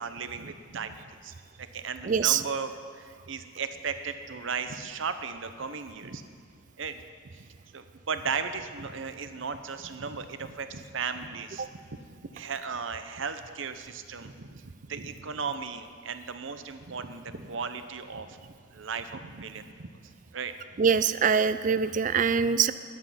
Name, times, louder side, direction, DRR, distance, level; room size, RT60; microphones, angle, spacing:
voice 1, 0.0-6.2 6.8-7.0 7.3-7.5 7.7-11.7 12.3-20.5, right 5 dB, 60° right, 10 dB, 0.7 m, -36 dB
voice 2, 2.1-2.4 11.6-11.7 20.8-22.7, right 6 dB, 35° right, 14 dB, 0.3 m, -23 dB
13.0 x 10.5 x 5.8 m, 2.1 s
head